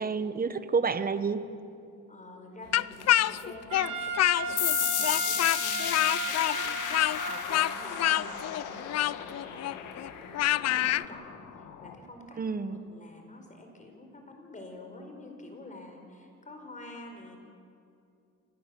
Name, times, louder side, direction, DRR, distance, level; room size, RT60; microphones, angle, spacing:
voice 1, 0.0-1.4 12.4-12.8, right 5 dB, 30° right, 12 dB, 1.2 m, -29 dB
voice 2, 2.1-11.5 11.8-17.4, left 1 dB, 25° left, 3 dB, 4.6 m, -48 dB
Speech, 2.7-4.7 5.0-11.0, left 13 dB, 60° left, 0.5 m, -27 dB
Trumpet, 3.7-8.3, right 4 dB, 75° right, 4.0 m, -35 dB
sound 1, 4.6-11.9, left 10 dB, 85° left, 2.1 m, -34 dB
28.0 x 17.5 x 7.6 m, 2.5 s
cardioid pair, 90°, 30 cm